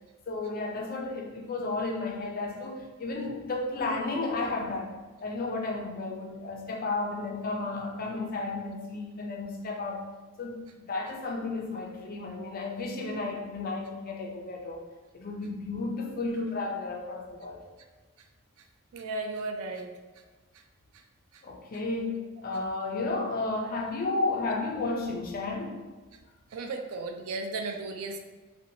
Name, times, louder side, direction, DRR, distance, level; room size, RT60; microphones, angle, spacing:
voice 1, 0.3-4.9 5.2-10.0 10.4-14.9 15.1-17.6 21.4-22.1 22.4-25.8, left 3 dB, 40° left, 0 dB, 0.4 m, -33 dB
voice 2, 18.9-19.9 26.5-28.2, right 3 dB, 75° right, 5 dB, 0.3 m, -35 dB
2.7 x 2.1 x 2.7 m, 1.3 s
head